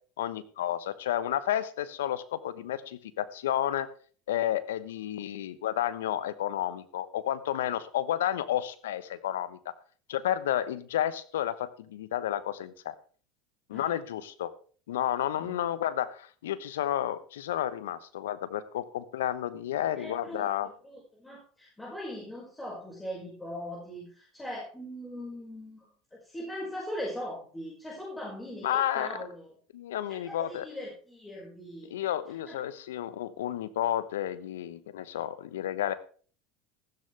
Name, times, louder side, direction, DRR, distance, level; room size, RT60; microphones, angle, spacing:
voice 1, 0.2-3.9 4.3-9.7 10.1-12.9 13.7-14.5 14.9-20.7 28.6-29.1 29.7-30.7 31.9-35.9, left 11 dB, 80° left, 15 dB, 1.0 m, -31 dB
voice 2, 20.0-25.9 26.2-29.5 30.1-31.9 32.5-32.6, equal, 10° left, -4 dB, 5.4 m, -40 dB
14.5 x 12.5 x 3.4 m, 0.41 s
hypercardioid pair, 80°, 0 cm